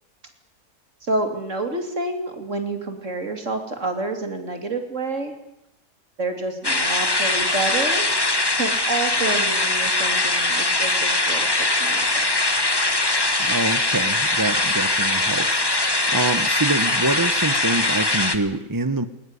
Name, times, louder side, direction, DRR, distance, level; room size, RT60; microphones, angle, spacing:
voice 1, 1.0-5.3 6.2-8.1 8.5-12.2, right 2 dB, 55° right, 6 dB, 3.4 m, -28 dB
sound 1, 6.6-18.4, left 2 dB, 15° left, 1.5 m, -21 dB
voice 2, 13.4-19.1, right 2 dB, 15° right, 12 dB, 0.9 m, -26 dB
21.0 x 19.5 x 9.9 m, 0.86 s
omnidirectional pair, 1.6 m